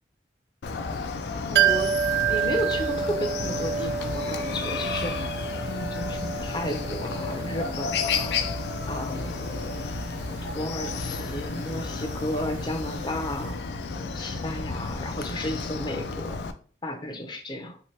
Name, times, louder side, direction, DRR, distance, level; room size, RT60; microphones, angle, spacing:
Chicken rooster, 0.6-16.5, left 4 dB, 75° left, 0.4 m, -32 dB
voice 1, 1.3-1.9 2.3-5.2 5.6-8.4 8.9-9.8 10.4-13.6 14.1-16.4 16.8-17.8, left 1 dB, 25° left, 3 dB, 0.5 m, -33 dB
sound 1, 1.6-13.2 13.4-13.5, right 8 dB, 65° right, 0.3 m, -30 dB
3.1 x 2.9 x 3.1 m, 0.41 s
head